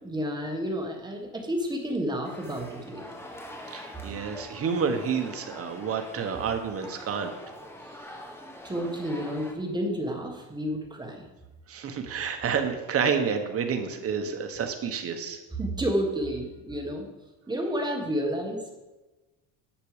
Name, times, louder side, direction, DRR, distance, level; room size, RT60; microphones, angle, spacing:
voice 1, 0.0-3.2 8.1-8.3 8.6-11.3 15.5-17.1 17.5-18.6, equal, 10° right, 2 dB, 1.6 m, -30 dB
sound 1, 2.2-9.5, left 1 dB, 5° left, 1.1 m, -44 dB
voice 2, 3.7-7.3 11.7-15.4, right 6 dB, 40° right, 6 dB, 1.3 m, -29 dB
10.5 x 6.7 x 5.0 m, 1.1 s
cardioid pair, 135°, 37 cm